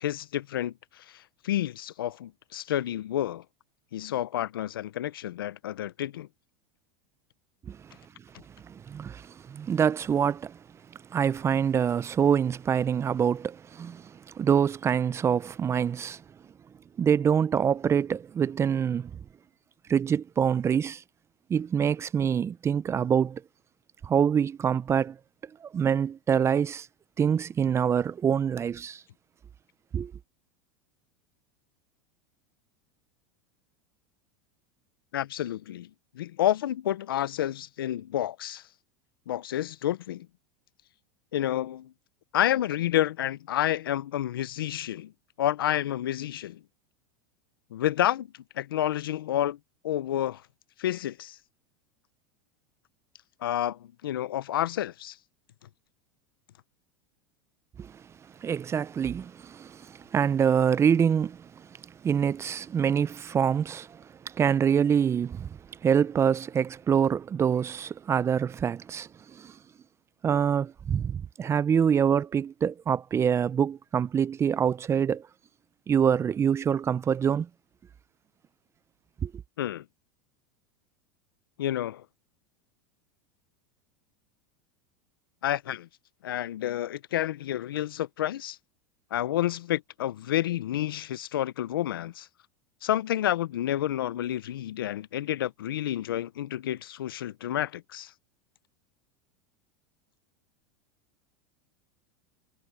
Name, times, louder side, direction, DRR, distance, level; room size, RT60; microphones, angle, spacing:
voice 1, 0.0-3.4 3.9-6.3 35.1-35.9 36.1-38.6 39.3-40.3 41.3-41.9 42.3-45.1 45.4-46.6 47.7-48.3 48.6-49.6 49.8-50.4 50.8-51.4 53.4-55.2 79.6-79.8 81.6-82.0 85.4-85.9 86.2-88.6 89.1-92.3 92.8-98.1, left 12 dB, 90° left, 0.8 m, -29 dB
voice 2, 8.7-10.6 11.1-16.2 17.0-19.1 19.9-21.0 21.5-23.4 24.0-25.2 25.6-26.9 27.2-29.0 29.9-30.1 57.8-58.0 58.4-69.5 70.2-75.2 75.9-77.5 79.2-79.3, right 7 dB, 25° right, 0.5 m, -25 dB
hypercardioid pair, 110°, 12 cm